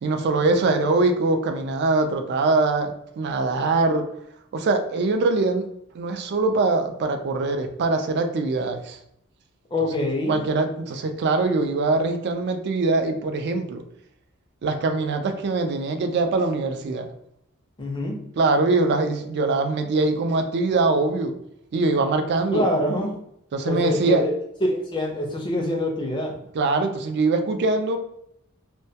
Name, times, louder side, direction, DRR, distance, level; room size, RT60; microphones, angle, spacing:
voice 1, 0.0-4.1 4.5-5.7 5.9-9.0 10.3-13.8 14.6-17.1 18.4-21.4 21.7-22.6 23.5-24.3 26.5-28.0, right 3 dB, 50° right, 6 dB, 0.3 m, -23 dB
voice 2, 9.7-10.4 17.8-18.2 22.5-23.2 23.7-24.3 24.6-26.4, left 1 dB, 20° left, 1 dB, 0.4 m, -25 dB
2.1 x 2.1 x 2.7 m, 0.76 s
head